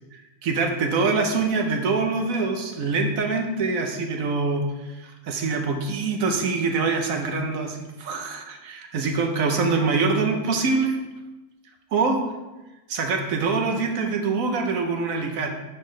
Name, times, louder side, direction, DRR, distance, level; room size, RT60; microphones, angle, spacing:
voice 1, 0.1-4.9 5.2-11.0 11.9-12.2 12.9-15.5, right 4 dB, 70° right, 4 dB, 1.2 m, -24 dB
9.6 x 4.6 x 3.2 m, 1.1 s
omnidirectional pair, 1.6 m